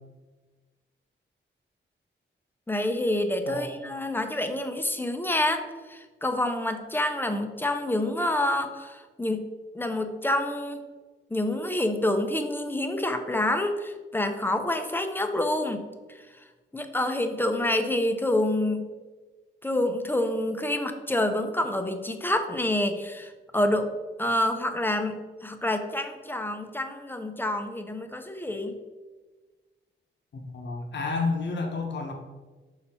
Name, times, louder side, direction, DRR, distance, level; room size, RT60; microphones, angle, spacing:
voice 1, 2.7-9.5 9.7-10.8 11.3-15.9 16.7-18.9 19.6-23.9 24.2-28.7, left 1 dB, 10° left, 6 dB, 0.6 m, -27 dB
voice 2, 30.3-32.1, left 3 dB, 60° left, 1 dB, 1.0 m, -30 dB
5.7 x 4.1 x 4.3 m, 1.3 s
wide cardioid pair, 100°, 20 cm